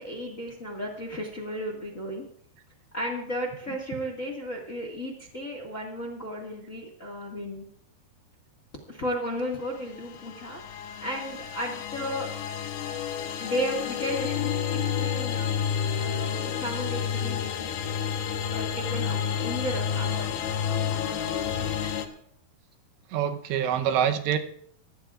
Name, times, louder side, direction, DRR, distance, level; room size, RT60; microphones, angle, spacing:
voice 1, 0.0-2.2 2.9-7.6 8.9-10.6 11.0-12.3 13.4-15.6 15.9-18.0 18.5-20.3 20.7-21.9, equal, 45° left, 1 dB, 1.0 m, -34 dB
sound 1, 9.8-22.1, left 8 dB, 70° left, 3.0 m, -30 dB
voice 2, 23.1-24.4, right 9 dB, 90° right, 6 dB, 3.2 m, -25 dB
21.0 x 16.0 x 2.5 m, 0.66 s
omnidirectional pair, 4.9 m